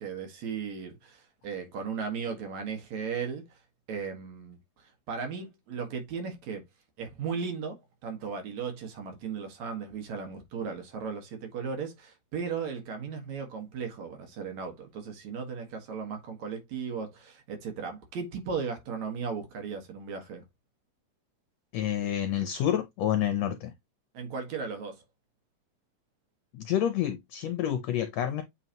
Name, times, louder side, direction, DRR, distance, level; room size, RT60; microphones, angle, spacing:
voice 1, 0.0-3.4 3.9-6.6 7.0-20.4 24.1-25.0, right 6 dB, 65° right, 2.8 m, -36 dB
voice 2, 21.7-23.7 26.5-28.4, left 10 dB, 70° left, 1.7 m, -28 dB
8.1 x 4.0 x 3.0 m
omnidirectional pair, 3.7 m